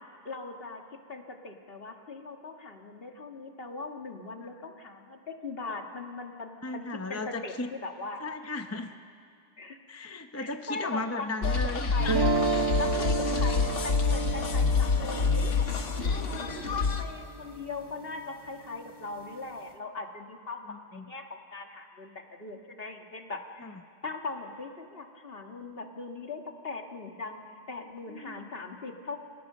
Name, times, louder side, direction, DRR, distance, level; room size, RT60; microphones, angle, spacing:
voice 1, 0.3-0.8 1.1-8.2 9.6-9.8 10.3-12.3 12.8-23.7 24.0-29.2, left 3 dB, 50° left, 3 dB, 1.9 m, -40 dB
voice 2, 6.6-7.7 8.2-8.9 9.9-12.2 13.4-13.5 20.7-21.1 23.6-23.7 28.1-28.5, left 2 dB, 15° left, 7 dB, 0.7 m, -36 dB
sound 1, 11.4-17.0, left 4 dB, 75° left, 1.7 m, -27 dB
sound 2, 12.0-18.1, right 3 dB, 25° right, 0.7 m, -32 dB
29.0 x 22.5 x 6.7 m, 2.3 s
omnidirectional pair, 1.3 m